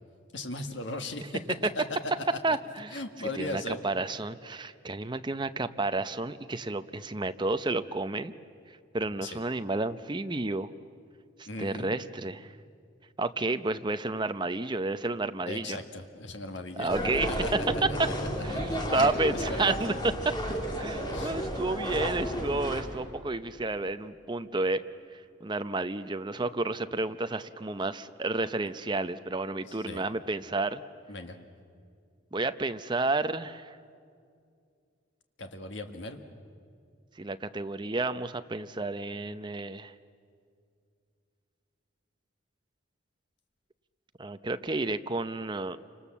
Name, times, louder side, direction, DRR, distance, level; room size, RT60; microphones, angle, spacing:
voice 1, 0.3-1.4 1.7-1.8 2.5-2.6 2.9-3.8 9.2-9.3 11.5-11.9 15.5-16.9 17.3-17.5 18.0-18.1 18.9-19.9 21.1-21.3 23.2-23.3 29.7-30.0 31.1-31.4 35.4-36.2, left 2 dB, 65° left, 6 dB, 1.8 m, -38 dB
voice 2, 2.4-8.3 8.7-10.7 11.4-12.5 13.2-15.8 16.8-17.4 17.8-18.1 18.4-19.9 20.8-24.8 25.1-30.8 32.3-33.8 37.2-39.9 44.2-45.8, right 2 dB, 25° right, 10 dB, 0.7 m, -31 dB
sound 1, 16.9-22.8, equal, 20° left, 2.6 m, -32 dB
28.5 x 25.5 x 7.3 m, 2.3 s
head